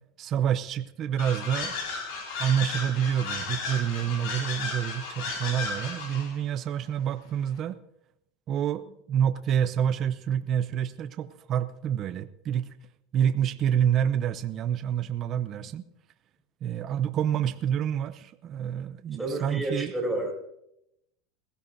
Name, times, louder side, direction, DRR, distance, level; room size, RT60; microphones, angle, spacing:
voice 1, 0.2-1.8 2.4-7.8 8.5-12.7 13.1-15.8 16.6-19.9, right 9 dB, 35° right, 11 dB, 0.6 m, -28 dB
sound 1, 1.2-6.3, left 4 dB, 75° left, 4.6 m, -34 dB
voice 2, 19.2-20.4, right 1 dB, ahead, -2 dB, 3.7 m, -30 dB
20.5 x 15.5 x 2.6 m, 0.82 s
supercardioid pair, 140°, 0 cm